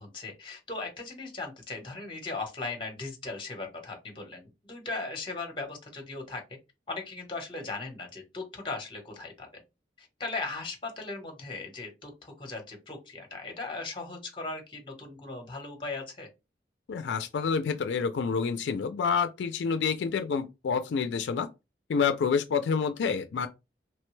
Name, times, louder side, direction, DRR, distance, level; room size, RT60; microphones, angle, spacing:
voice 1, 0.0-6.4 6.9-9.5 10.0-16.3, left 3 dB, 30° left, 0.9 m, -38 dB
voice 2, 16.9-21.5 21.9-23.5, left 6 dB, 85° left, 0.3 m, -28 dB
3.1 x 2.2 x 3.1 m
head